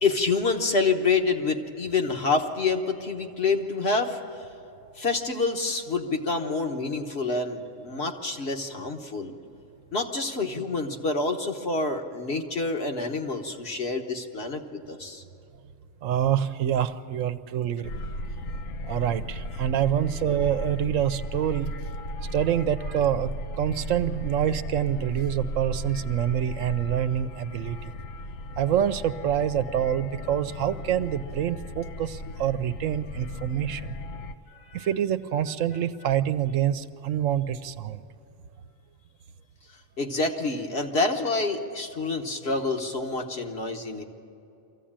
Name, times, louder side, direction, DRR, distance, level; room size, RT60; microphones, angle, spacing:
voice 1, 0.0-4.2 5.0-9.4 9.9-15.2 34.7-34.9 40.0-44.0, left 3 dB, 55° left, 3 dB, 1.5 m, -27 dB
voice 2, 16.0-17.9 18.8-21.7 22.2-27.9 28.6-33.9 34.7-38.0, right 10 dB, 75° right, 11 dB, 1.0 m, -26 dB
sound 1, 17.8-34.3, left 1 dB, 80° left, 1.2 m, -36 dB
23.5 x 15.0 x 8.8 m, 2.8 s
omnidirectional pair, 1.4 m